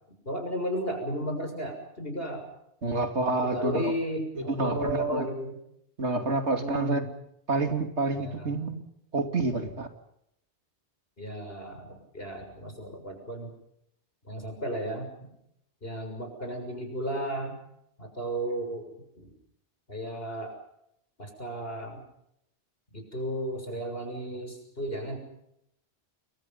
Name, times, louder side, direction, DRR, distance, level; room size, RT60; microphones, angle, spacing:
voice 1, 0.3-2.5 3.4-5.6 6.5-7.1 8.2-8.5 11.2-13.5 14.3-15.1 15.8-17.6 18.0-19.3 19.9-20.6 21.2-22.0 22.9-25.2, equal, 60° left, 5 dB, 6.9 m, -34 dB
voice 2, 2.8-3.9 4.3-5.3 6.0-7.0 7.5-8.9 9.1-9.9, right 3 dB, 85° right, 6 dB, 3.0 m, -28 dB
29.5 x 23.0 x 5.6 m, 0.76 s
omnidirectional pair, 1.1 m